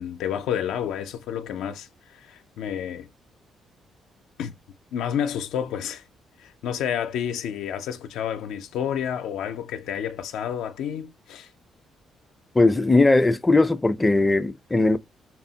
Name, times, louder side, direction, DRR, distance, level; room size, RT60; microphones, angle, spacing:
voice 1, 0.0-3.1 4.4-4.5 4.9-6.0 6.4-11.5, left 9 dB, 85° left, 0.4 m, -30 dB
voice 2, 12.5-15.0, left 2 dB, 15° left, 0.4 m, -19 dB
5.6 x 2.0 x 2.7 m
cardioid pair, 90°, 0 cm